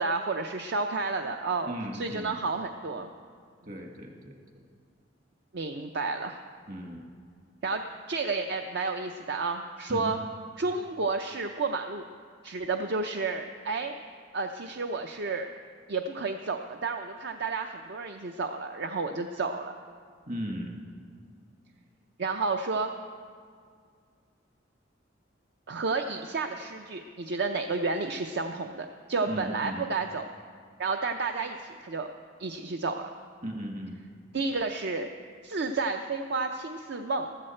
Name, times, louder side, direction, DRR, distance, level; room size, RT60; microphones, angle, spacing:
voice 1, 0.0-1.7 2.0-3.1 5.5-6.4 7.6-10.2 10.6-12.0 12.4-13.9 14.3-15.5 15.9-19.7 22.2-22.9 25.7-30.2 30.8-32.1 32.4-33.1 34.3-35.1 35.4-37.3, right 3 dB, 60° right, 6 dB, 0.6 m, -31 dB
voice 2, 1.6-2.4 3.6-4.6 6.7-7.1 9.9-10.2 20.3-20.8 29.3-29.8 33.4-33.9, equal, 45° right, 2 dB, 1.7 m, -37 dB
14.0 x 14.0 x 4.4 m, 2.1 s
head